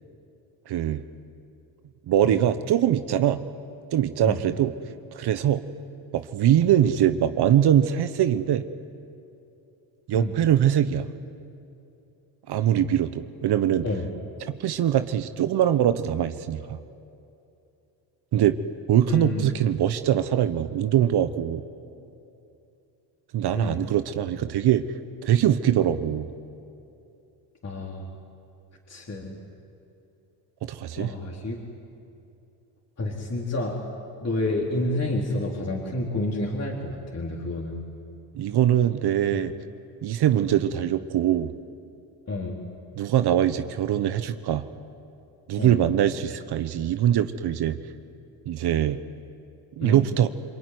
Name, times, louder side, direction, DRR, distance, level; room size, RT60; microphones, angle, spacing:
voice 1, 0.7-1.0 2.1-3.4 3.9-4.7 5.1-5.6 6.1-8.6 10.1-11.1 12.5-13.9 14.5-16.8 18.3-18.6 18.9-21.6 23.3-24.8 25.2-26.3 30.6-31.1 38.3-39.5 40.0-41.5 43.0-44.6 45.5-47.8 48.5-49.0 49.8-50.3, right 11 dB, 60° right, 10 dB, 1.1 m, -22 dB
voice 2, 19.1-19.5 23.5-23.7 27.6-28.1 28.9-29.4 31.0-31.6 33.0-33.8 34.2-37.8 39.3-39.4 42.3-42.6 45.6-45.8 49.8-50.0, left 2 dB, 35° left, -2 dB, 3.7 m, -29 dB
27.5 x 22.5 x 9.6 m, 2.7 s
cardioid pair, 90°, 45 cm